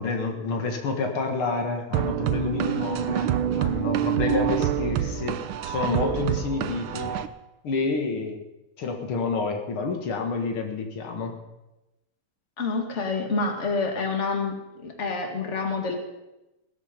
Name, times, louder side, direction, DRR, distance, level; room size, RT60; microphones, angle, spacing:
voice 1, 0.0-7.1 7.6-8.4 8.8-11.3, left 3 dB, 90° left, 3 dB, 2.7 m, -29 dB
sound 1, 1.9-7.3, right 11 dB, 80° right, 1.6 m, -26 dB
voice 2, 12.6-14.5 14.8-16.0, left 4 dB, 35° left, 3 dB, 2.3 m, -27 dB
17.5 x 13.5 x 5.3 m, 0.98 s
omnidirectional pair, 2.3 m